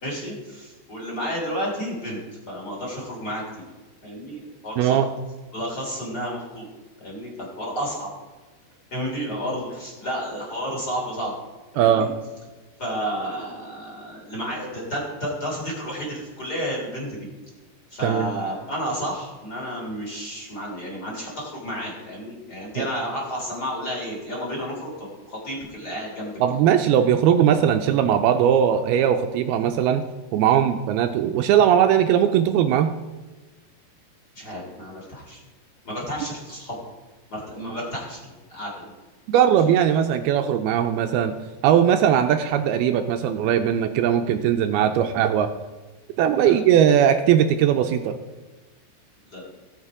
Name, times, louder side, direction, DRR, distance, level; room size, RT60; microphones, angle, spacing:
voice 1, 0.0-2.2 2.5-3.4 4.0-5.0 5.5-6.7 7.0-8.1 8.9-11.3 11.7-12.1 12.8-17.3 17.9-26.3 34.3-35.4 35.8-36.9 37.3-38.2 38.5-38.7 46.4-46.5 49.2-49.4, equal, 25° left, -3 dB, 3.3 m, -31 dB
voice 2, 4.8-5.1 11.8-12.1 18.0-18.3 22.8-22.9 26.4-30.1 30.3-32.9 39.3-41.3 41.6-45.5 46.2-48.2, right 9 dB, 85° right, 7 dB, 2.3 m, -19 dB
18.0 x 6.6 x 4.9 m, 1.2 s
omnidirectional pair, 5.0 m